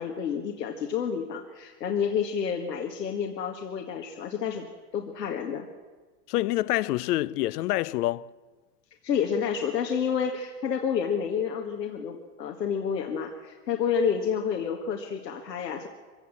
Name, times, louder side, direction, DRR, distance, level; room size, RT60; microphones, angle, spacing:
voice 1, 0.0-4.7 4.9-5.7 9.0-15.9, left 7 dB, 90° left, 2.0 m, -29 dB
voice 2, 6.3-8.3, left 16 dB, 70° left, 0.6 m, -26 dB
24.0 x 16.0 x 7.4 m
hypercardioid pair, 100°, 48 cm